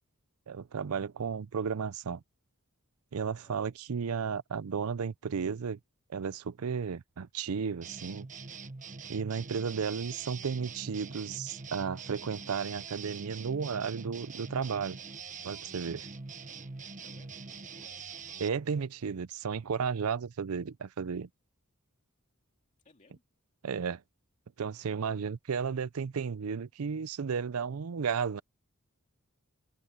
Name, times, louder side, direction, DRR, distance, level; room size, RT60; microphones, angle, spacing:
voice 1, 0.5-2.2 3.1-5.8 6.1-8.3 9.1-15.0 15.4-16.1 18.4-21.3 23.6-24.0 24.6-28.4, right 6 dB, 80° right, 0.5 m, -33 dB
sound 1, 7.8-18.5, right 5 dB, 35° right, 1.4 m, -44 dB
voice 2, 17.0-18.0 22.8-23.2 24.9-25.3, left 3 dB, 35° left, 2.3 m, -62 dB
head